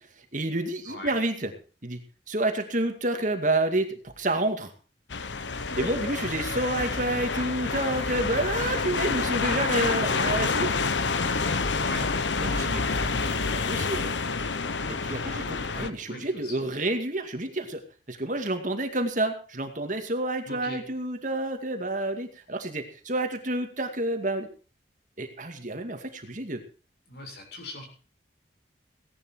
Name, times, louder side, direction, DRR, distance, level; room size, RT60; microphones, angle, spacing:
voice 1, 0.3-1.5 1.8-2.0 2.3-4.7 5.8-10.8 12.4-14.1 14.9-17.8 18.1-24.5 25.2-26.6, right 2 dB, 45° right, 6 dB, 2.2 m, -29 dB
voice 2, 0.9-1.2 5.7-6.0 11.8-12.1 15.7-17.0 20.5-20.8 27.1-27.9, left 2 dB, 60° left, 2 dB, 7.1 m, -39 dB
sound 1, 5.1-15.9, left 4 dB, 80° left, 1.1 m, -28 dB
17.5 x 11.0 x 4.6 m, 0.37 s
head